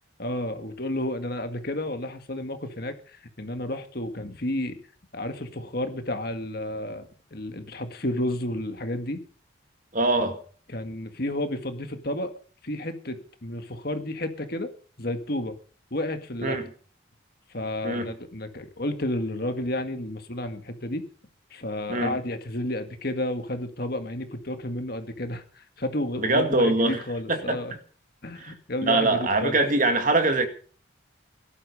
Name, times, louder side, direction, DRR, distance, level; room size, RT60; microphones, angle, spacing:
voice 1, 0.2-4.8 5.1-9.2 10.7-12.3 12.6-14.7 15.0-15.5 15.9-16.6 17.5-21.0 21.5-27.7 28.2-29.6, left 1 dB, 50° left, 1.9 m, -31 dB
voice 2, 9.9-10.4 16.4-16.6 17.8-18.1 21.9-22.1 26.2-27.0 27.3-27.6 28.4-28.5 28.9-30.5, right 2 dB, 40° right, 2.1 m, -23 dB
17.5 x 12.0 x 5.4 m
head